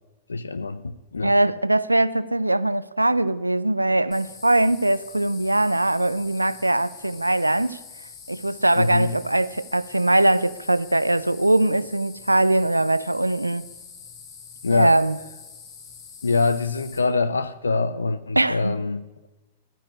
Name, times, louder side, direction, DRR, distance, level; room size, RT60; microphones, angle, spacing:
voice 1, 0.3-1.4 8.7-9.1 14.6-15.0 16.2-19.0, left 3 dB, 75° left, 0.6 m, -24 dB
voice 2, 1.2-7.8 8.3-13.6 14.7-15.2 18.4-18.8, right 1 dB, 85° right, 0.5 m, -21 dB
sound 1, 4.1-17.0, left 6 dB, 45° left, 3.7 m, -44 dB
12.5 x 10.0 x 9.8 m
figure-of-eight pair, 100°, 0 cm